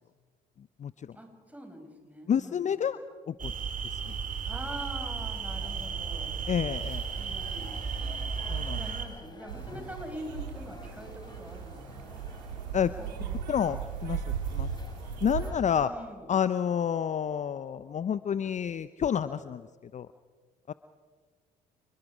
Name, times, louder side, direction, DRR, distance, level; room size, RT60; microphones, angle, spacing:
voice 1, 1.1-2.8 4.4-6.4 7.2-7.8 8.7-12.2 13.0-13.4 15.7-16.3, equal, 5° right, 3 dB, 6.1 m, -44 dB
voice 2, 2.3-3.0 3.3-3.5 3.9-4.0 6.5-7.0 8.5-8.8 12.7-12.9 13.5-14.2 14.5-14.7 15.2-15.9 16.3-19.7 19.9-20.1 20.7-20.8, left 8 dB, 35° left, 14 dB, 0.7 m, -29 dB
sound 1, 3.4-9.1, right 6 dB, 40° right, 3.2 m, -34 dB
sound 2, 5.5-15.8, left 2 dB, 20° left, 3.6 m, -51 dB
sound 3, 9.5-15.5, right 7 dB, 85° right, 1.9 m, -37 dB
28.0 x 22.0 x 5.0 m, 1.6 s
hypercardioid pair, 55°, 21 cm